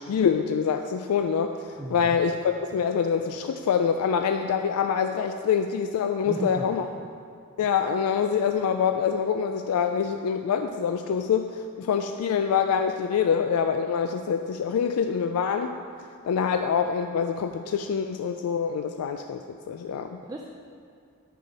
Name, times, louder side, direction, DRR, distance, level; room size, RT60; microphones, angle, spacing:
voice 1, 0.0-6.8 7.6-15.8 16.2-20.2, left 7 dB, 85° left, 7 dB, 0.3 m, -25 dB
voice 2, 1.8-2.2 6.2-6.7 20.2-20.4, right 1 dB, 15° right, 0 dB, 0.4 m, -34 dB
7.0 x 5.7 x 5.2 m, 2.3 s
head